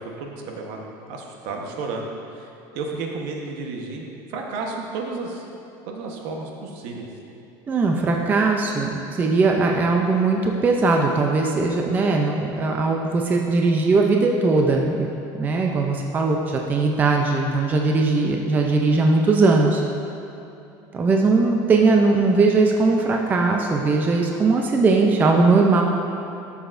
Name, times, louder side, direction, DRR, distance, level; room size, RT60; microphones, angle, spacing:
voice 1, 0.2-0.8 1.1-2.1 2.4-5.5 5.9-7.1, right 3 dB, 65° right, 1 dB, 1.1 m, -32 dB
voice 2, 7.7-15.1 15.4-19.8 20.9-25.8, right 3 dB, 20° right, 1 dB, 0.4 m, -19 dB
12.0 x 7.0 x 2.6 m, 2.9 s
cardioid pair, 160°, 9 cm